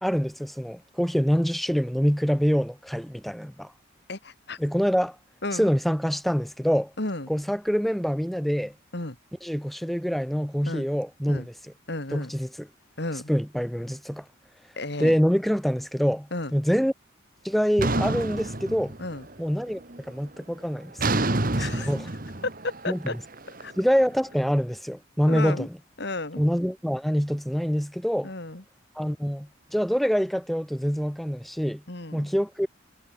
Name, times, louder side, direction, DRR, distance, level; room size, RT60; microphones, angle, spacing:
voice 1, 0.0-3.7 4.6-5.2 5.5-6.9 7.3-8.7 9.4-11.5 12.1-12.7 13.3-14.2 15.0-16.9 17.4-18.9 19.4-19.8 20.1-21.3 21.9-22.0 22.9-23.0 23.8-25.7 26.4-28.3 29.0-31.8 32.1-32.7, equal, ahead, 0.5 m, -25 dB
voice 2, 4.1-4.6 5.4-5.7 7.0-7.3 8.9-9.2 10.7-10.9 11.3-11.5 11.9-12.3 13.0-13.3 14.8-15.2 16.3-16.5 19.0-19.3 21.6-21.9 22.6-23.1 23.6-23.7 25.3-25.7 26.0-26.4 28.2-28.6 31.9-32.3, left 2 dB, 55° left, 2.1 m, -33 dB
sound 1, 17.8-19.3 19.7-20.1 21.0-24.1, right 2 dB, 45° right, 1.7 m, -28 dB
head